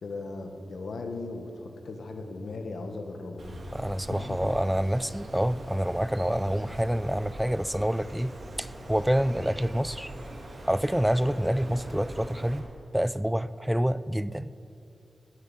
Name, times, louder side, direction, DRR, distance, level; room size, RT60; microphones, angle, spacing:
voice 1, 0.0-3.6 4.1-4.3, left 3 dB, 75° left, 5 dB, 1.4 m, -37 dB
Bird, 3.4-12.6, right 1 dB, 55° right, 2.1 m, -43 dB
voice 2, 3.7-10.1 10.7-12.7 12.9-14.5, equal, 5° right, 16 dB, 0.3 m, -27 dB
9.6 x 9.5 x 8.7 m, 2.7 s
wide cardioid pair, 95°, 0 cm